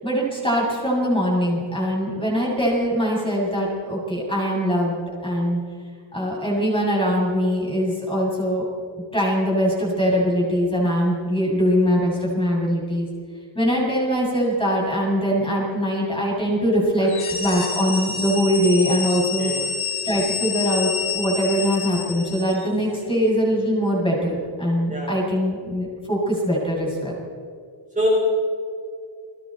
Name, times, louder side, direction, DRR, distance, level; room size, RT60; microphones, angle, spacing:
voice 1, 0.0-5.6 6.1-8.6 9.1-13.1 13.5-17.1 17.4-19.5 20.0-27.2, equal, 10° left, -4 dB, 7.5 m, -22 dB
sound 1, 17.0-22.7, left 5 dB, 75° left, 3.4 m, -28 dB
voice 2, 19.4-19.6 24.9-25.2 28.0-28.1, right 1 dB, 15° right, -5 dB, 5.2 m, -25 dB
30.0 x 22.0 x 4.5 m, 2.3 s
wide cardioid pair, 170°, 48 cm